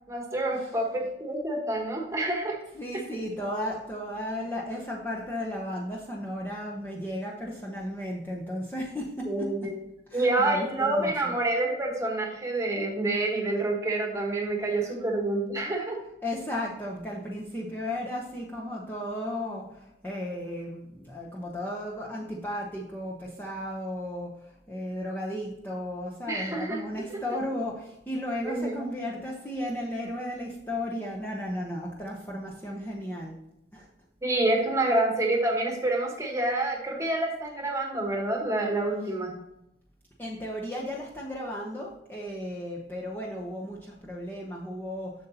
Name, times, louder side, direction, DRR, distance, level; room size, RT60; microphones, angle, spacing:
voice 1, 0.1-2.6 9.3-9.8 10.1-16.0 26.3-26.8 27.1-27.2 28.4-28.8 34.2-39.4, right 2 dB, 15° right, 0 dB, 1.3 m, -27 dB
voice 2, 2.7-9.7 10.1-11.3 16.2-33.4 33.7-33.9 40.2-45.3, left 1 dB, 10° left, -3 dB, 0.8 m, -35 dB
7.8 x 6.7 x 2.8 m, 0.85 s
head